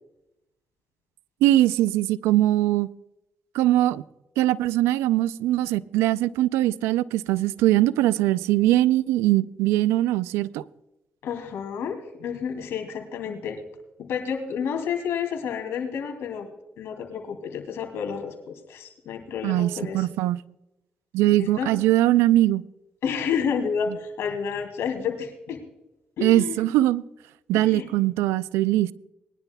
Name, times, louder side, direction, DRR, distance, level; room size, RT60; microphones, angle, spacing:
voice 1, 1.4-2.9 3.5-4.0 4.4-10.6 19.4-20.4 21.1-22.6 26.2-27.0 27.5-28.9, right 15 dB, 90° right, 18 dB, 0.4 m, -21 dB
voice 2, 11.2-13.6 14.0-16.5 16.8-20.1 21.4-21.7 23.0-25.6 26.2-26.6 27.5-27.9, left 7 dB, 80° left, 4 dB, 2.7 m, -30 dB
21.0 x 11.0 x 2.3 m, 0.91 s
supercardioid pair, 50°, 4 cm